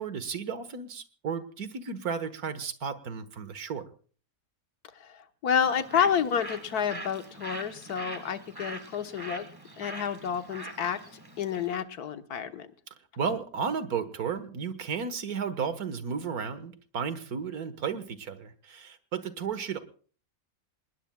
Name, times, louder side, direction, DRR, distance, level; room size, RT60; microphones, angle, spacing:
voice 1, 0.0-3.9 13.2-19.8, right 6 dB, 75° right, 12 dB, 1.9 m, -33 dB
voice 2, 4.9-9.5 9.8-12.7, left 8 dB, 90° left, 9 dB, 1.7 m, -30 dB
Bird, 5.6-11.8, right 2 dB, 15° right, 1.5 m, -43 dB
28.0 x 20.0 x 2.3 m, 0.42 s
omnidirectional pair, 1.6 m